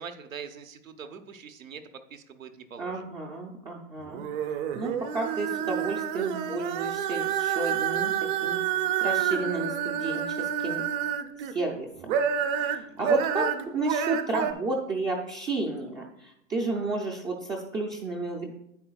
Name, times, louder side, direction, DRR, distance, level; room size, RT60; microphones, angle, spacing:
voice 1, 0.0-1.8 2.1-3.1 12.9-13.2, right 6 dB, 85° right, 6 dB, 1.0 m, -43 dB
voice 2, 2.8-4.3 4.7-8.6 9.0-10.8 11.5-12.2 12.6-18.5, right 2 dB, 10° right, -1 dB, 0.4 m, -32 dB
sound 1, 4.1-11.5 12.0-14.5, right 8 dB, 40° right, 0.7 m, -28 dB
10.5 x 7.9 x 2.3 m, 0.78 s
hypercardioid pair, 120°, 39 cm